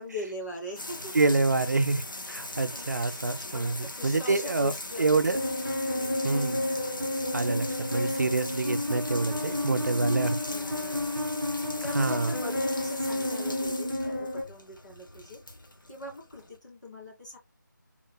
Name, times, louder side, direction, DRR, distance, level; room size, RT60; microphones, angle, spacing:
voice 1, 0.0-1.1 2.4-2.9 3.5-5.4 5.9-6.2 9.3-10.0 10.5-15.4 15.9-17.4, left 2 dB, 65° left, 2.0 m, -42 dB
sound 1, 0.8-16.6, left 2 dB, 85° left, 0.9 m, -40 dB
voice 2, 1.1-2.0 2.3-4.7 5.0-5.4 6.2-6.6 7.3-10.4 11.9-12.3, right 3 dB, 55° right, 0.5 m, -26 dB
sound 2, 5.3-14.4, left 1 dB, 10° left, 0.5 m, -31 dB
3.7 x 2.1 x 3.1 m
figure-of-eight pair, 175°, 11 cm